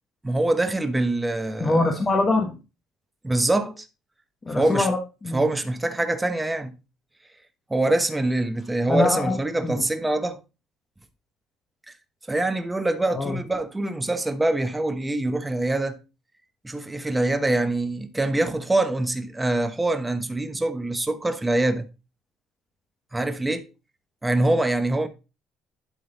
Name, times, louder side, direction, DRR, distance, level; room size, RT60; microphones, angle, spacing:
voice 1, 0.2-1.9 3.2-3.9 4.5-4.9 5.3-6.7 7.7-10.4 12.3-16.0 16.6-21.9 23.1-23.7 24.2-25.1, right 2 dB, 10° right, 1.0 m, -24 dB
voice 2, 1.6-2.5 4.5-5.4 8.9-9.4 9.6-9.8 13.1-13.4, left 2 dB, 20° left, 1.4 m, -23 dB
11.5 x 3.9 x 3.9 m
cardioid pair, 110°, 0 cm